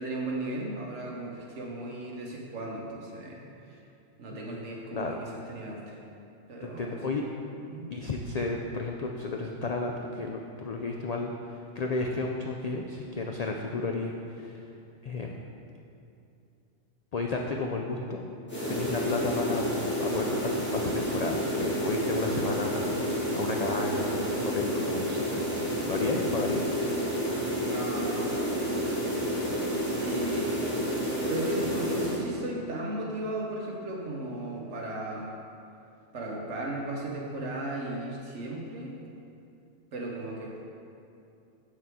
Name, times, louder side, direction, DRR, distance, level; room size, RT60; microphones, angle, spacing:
voice 1, 0.0-3.4 3.7-3.8 4.2-6.0 6.5-7.2 7.7-7.9 27.6-29.1 30.0-30.6 31.2-35.3 36.1-38.9 39.9-40.5, right 1 dB, 75° right, -2 dB, 1.4 m, -36 dB
voice 2, 6.6-7.2 7.9-11.3 11.7-14.6 15.0-15.4 17.1-18.2 18.7-19.7 20.0-23.0 23.4-26.7, left 3 dB, 75° left, 1 dB, 0.3 m, -32 dB
sound 1, 18.5-32.2, equal, 10° left, 1.7 m, -30 dB
7.6 x 6.4 x 3.6 m, 2.6 s
omnidirectional pair, 1.3 m